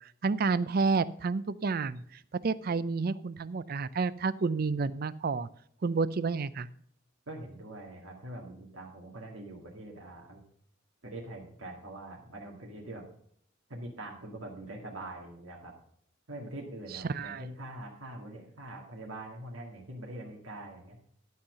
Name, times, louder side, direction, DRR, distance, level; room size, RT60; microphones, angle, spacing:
voice 1, 0.2-2.0 2.4-5.5 5.8-6.7 16.9-17.4, right 4 dB, 45° right, 17 dB, 0.4 m, -30 dB
voice 2, 7.3-10.4 11.0-13.0 13.7-15.7 16.3-21.0, right 1 dB, 90° right, -2 dB, 2.0 m, -43 dB
11.5 x 5.6 x 6.3 m, 0.64 s
head